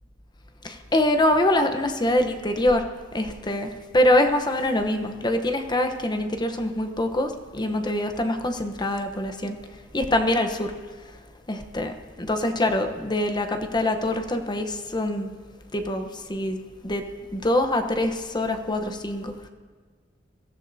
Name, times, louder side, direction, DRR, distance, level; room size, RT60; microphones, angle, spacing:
voice 1, 0.6-2.8 3.1-3.7 3.9-9.6 9.9-10.7 11.5-15.3 15.7-16.6 16.8-17.0 17.3-19.5, left 1 dB, 25° left, 6 dB, 0.9 m, -24 dB
22.0 x 13.5 x 2.8 m, 1.5 s
head